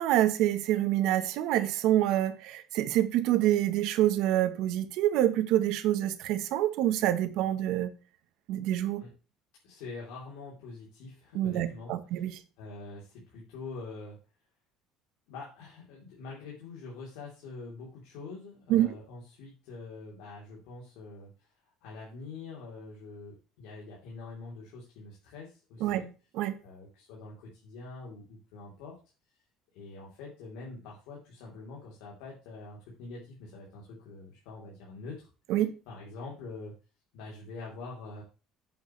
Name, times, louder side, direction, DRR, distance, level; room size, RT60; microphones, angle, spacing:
voice 1, 0.0-7.9 8.5-9.0 11.3-12.4 18.7-18.9 25.8-26.1 26.3-26.5 35.5-35.7, right 13 dB, 65° right, 1.1 m, -26 dB
voice 2, 9.6-12.3 12.6-14.2 15.3-21.5 21.8-26.1 26.6-28.9 29.7-35.3 35.9-36.7 37.1-38.2, left 3 dB, 90° left, 3.4 m, -45 dB
9.4 x 8.0 x 3.2 m
cardioid pair, 170°, 0 cm